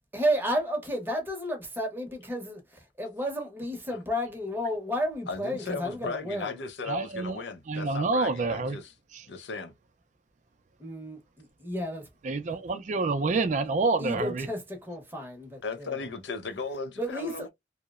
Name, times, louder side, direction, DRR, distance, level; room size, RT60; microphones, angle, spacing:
voice 1, 0.1-6.6 10.8-12.1 14.0-16.0 17.0-17.5, equal, 10° right, 0.7 m, -32 dB
voice 2, 5.3-8.9 9.3-9.7 15.6-17.5, left 4 dB, 80° left, 0.5 m, -36 dB
voice 3, 6.9-7.4 7.7-8.8 9.1-9.2 12.2-14.5, right 3 dB, 40° right, 0.3 m, -27 dB
2.8 x 2.0 x 2.3 m
head